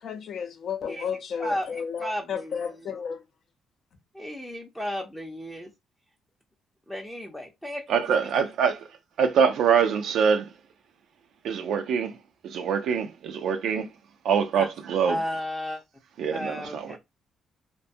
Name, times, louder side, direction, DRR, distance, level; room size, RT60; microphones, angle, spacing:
voice 1, 0.0-3.2, left 7 dB, 60° left, 0.5 m, -33 dB
voice 2, 1.4-2.8 4.1-5.7 6.9-7.8 8.2-8.3 8.6-8.7 14.5-14.7 15.1-15.8 16.3-17.0, left 1 dB, 10° left, 0.5 m, -34 dB
voice 3, 7.9-8.8 9.2-10.5 11.4-12.1 12.4-13.9 14.2-15.2 16.2-17.0, right 7 dB, 75° right, 0.3 m, -24 dB
2.6 x 2.1 x 2.6 m
cardioid pair, 90°, 0 cm